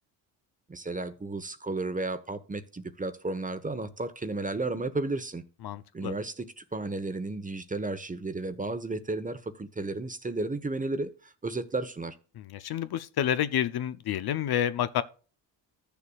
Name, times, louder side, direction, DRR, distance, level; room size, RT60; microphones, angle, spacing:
voice 1, 0.7-5.4 5.9-11.1 11.4-12.1, right 2 dB, 15° right, 1.0 m, -33 dB
voice 2, 5.6-6.1 12.4-15.0, left 10 dB, 55° left, 0.7 m, -29 dB
15.0 x 7.0 x 2.4 m
supercardioid pair, 70°, 47 cm